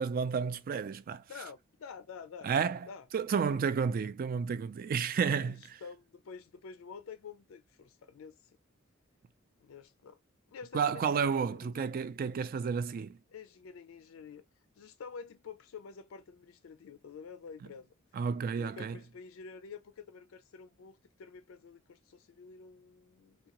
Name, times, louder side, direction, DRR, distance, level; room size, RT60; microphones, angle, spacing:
voice 1, 0.0-1.2 2.4-2.9 3.1-5.8 10.7-13.2 18.1-19.0, right 6 dB, 45° right, 0.3 m, -31 dB
voice 2, 1.3-2.5 2.9-3.1 3.4-3.6 5.4-8.4 9.6-10.2 10.5-11.9 13.3-14.4 14.8-17.9 18.6-23.5, left 5 dB, 70° left, 0.4 m, -49 dB
3.6 x 2.2 x 2.9 m
head